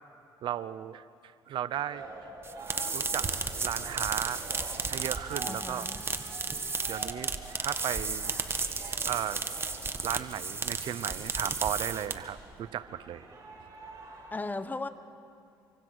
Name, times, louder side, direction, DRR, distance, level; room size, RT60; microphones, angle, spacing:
voice 1, 0.4-1.0 1.5-2.0 2.9-3.3 3.6-4.4 4.9-5.9 6.9-7.3 7.6-8.3 8.8-9.4 10.0-13.3, right 11 dB, 70° right, 15 dB, 0.7 m, -35 dB
sound 1, 1.9-14.3, right 3 dB, 45° right, 8.0 m, -47 dB
sound 2, 2.4-12.4, right 4 dB, 30° right, 1.6 m, -33 dB
voice 2, 5.4-6.0 14.3-14.9, left 3 dB, 20° left, 11 dB, 1.2 m, -36 dB
26.5 x 25.0 x 6.3 m, 2.5 s
cardioid pair, 85°, 9 cm